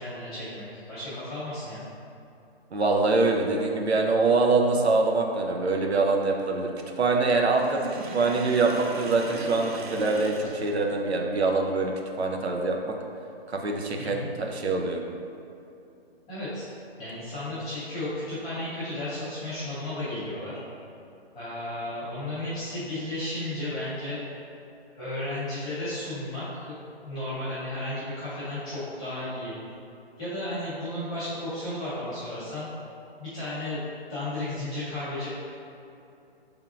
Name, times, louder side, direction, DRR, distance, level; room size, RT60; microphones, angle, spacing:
voice 1, 0.0-1.8 14.0-14.3 16.3-16.6 17.0-20.5 21.3-24.2 24.9-26.8 27.0-29.5 30.2-32.7 33.2-33.8 34.1-35.3, left 1 dB, 5° left, -14 dB, 0.4 m, -33 dB
voice 2, 2.7-6.7 7.0-7.8 8.1-12.9 13.6-15.0, right 3 dB, 90° right, 1 dB, 0.7 m, -24 dB
Sink (filling or washing), 7.5-11.4, right 3 dB, 50° right, 0.5 m, -38 dB
5.8 x 3.6 x 2.4 m, 2.7 s
hypercardioid pair, 145°, 31 cm